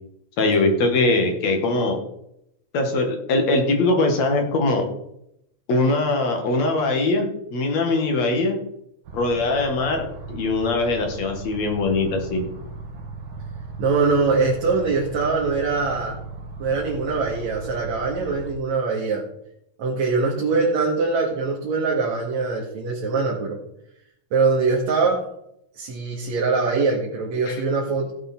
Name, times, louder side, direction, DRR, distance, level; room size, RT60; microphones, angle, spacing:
voice 1, 0.4-2.0 2.7-4.8 5.7-8.6 9.1-10.0 10.3-12.4 27.5-27.6, left 2 dB, 65° left, 3 dB, 3.1 m, -21 dB
sound 1, 9.1-18.5, right 3 dB, 90° right, 3.3 m, -37 dB
voice 2, 13.8-16.2 16.6-19.2 19.8-23.6 24.3-25.2 25.7-28.1, right 4 dB, 70° right, -2 dB, 3.1 m, -22 dB
16.0 x 7.8 x 4.5 m, 0.78 s
omnidirectional pair, 3.4 m